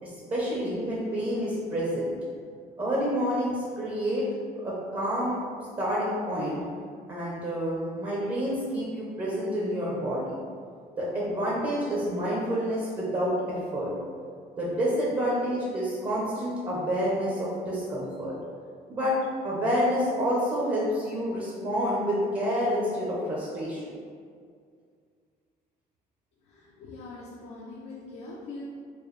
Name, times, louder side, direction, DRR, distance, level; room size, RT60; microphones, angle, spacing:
voice 1, 0.0-2.1 2.8-4.2 4.6-5.4 5.8-6.6 7.1-10.4 11.0-13.9 14.6-18.3 18.9-19.1 19.4-23.9, equal, 30° right, -6 dB, 0.8 m, -28 dB
voice 2, 26.5-28.6, left 3 dB, 80° left, -5 dB, 0.6 m, -42 dB
4.5 x 2.3 x 3.2 m, 2.2 s
cardioid pair, 110°, 17 cm